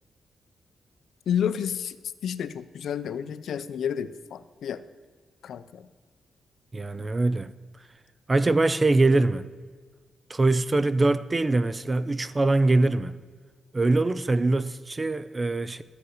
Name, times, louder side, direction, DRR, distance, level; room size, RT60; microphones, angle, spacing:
voice 1, 1.3-2.0 2.2-4.8 5.4-5.9, left 8 dB, 65° left, 0.5 m, -30 dB
voice 2, 6.7-7.5 8.3-9.5 10.3-13.2 13.7-15.8, right 2 dB, 20° right, 0.4 m, -23 dB
13.0 x 8.0 x 8.1 m
wide cardioid pair, 175°, 0 cm